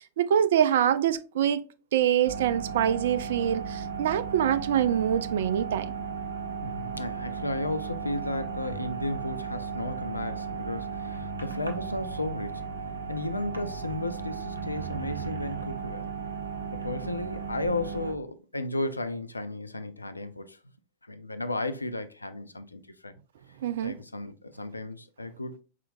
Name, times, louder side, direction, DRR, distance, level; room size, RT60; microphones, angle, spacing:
voice 1, 0.0-1.6 1.9-5.9 23.6-23.9, right 9 dB, 60° right, 0.3 m, -25 dB
sound 1, 2.2-18.1, right 6 dB, 80° right, 0.8 m, -35 dB
voice 2, 6.6-12.7 13.1-16.1 16.7-20.6 21.0-23.2 23.8-25.6, left 2 dB, 80° left, 0.4 m, -34 dB
4.3 x 3.6 x 2.5 m
figure-of-eight pair, 90°, 0 cm